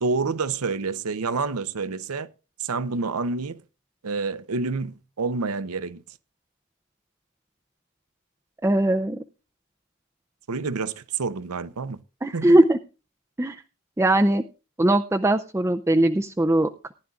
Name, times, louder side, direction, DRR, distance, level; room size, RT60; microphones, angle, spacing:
voice 1, 0.0-2.3 2.6-3.6 4.0-6.0 10.5-12.0 12.3-12.6, right 4 dB, 80° right, 0.7 m, -28 dB
voice 2, 8.6-9.2 12.2-12.8 13.4-13.6 14.0-14.4 14.8-16.9, right 1 dB, 10° right, 0.5 m, -20 dB
19.0 x 11.0 x 2.4 m
head